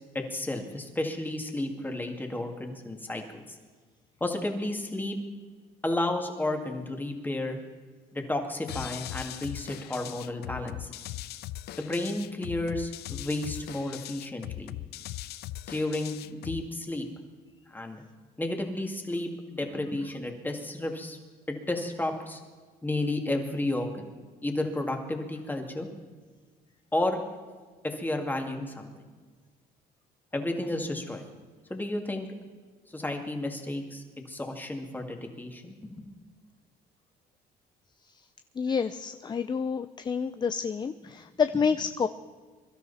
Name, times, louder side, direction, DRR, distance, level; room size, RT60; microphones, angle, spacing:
voice 1, 0.1-3.6 4.2-5.2 5.8-7.6 8.1-10.9 11.8-14.7 15.7-17.1 17.7-18.0 18.4-21.2 21.5-22.4 22.8-24.1 24.4-25.9 26.9-27.2 27.8-28.9 30.3-31.2 31.7-32.3 32.9-36.1, left 1 dB, 10° left, 3 dB, 2.3 m, -32 dB
sound 1, 8.7-16.7, left 14 dB, 70° left, 0.5 m, -40 dB
voice 2, 38.6-42.1, left 6 dB, 25° left, 11 dB, 0.6 m, -28 dB
23.5 x 12.5 x 4.2 m, 1.5 s
cardioid pair, 110°, 17 cm